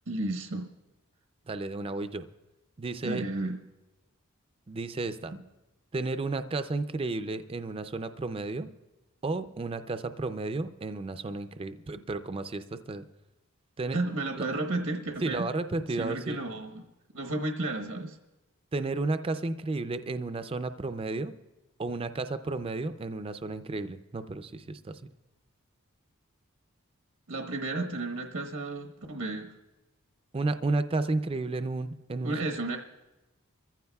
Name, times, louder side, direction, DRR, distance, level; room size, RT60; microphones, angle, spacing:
voice 1, 0.1-0.7 3.0-3.6 13.9-15.5 16.0-16.8 17.1-18.2 27.3-29.5 32.2-32.8, right 2 dB, 90° right, 3 dB, 1.1 m, -32 dB
voice 2, 1.5-2.2 2.8-3.2 4.7-5.3 5.9-8.7 9.2-13.0 13.8-14.0 14.4-14.5 15.2-16.4 18.7-21.3 21.8-25.0 30.3-32.4, right 3 dB, 25° right, 10 dB, 0.4 m, -32 dB
23.5 x 15.0 x 2.3 m, 1.0 s
head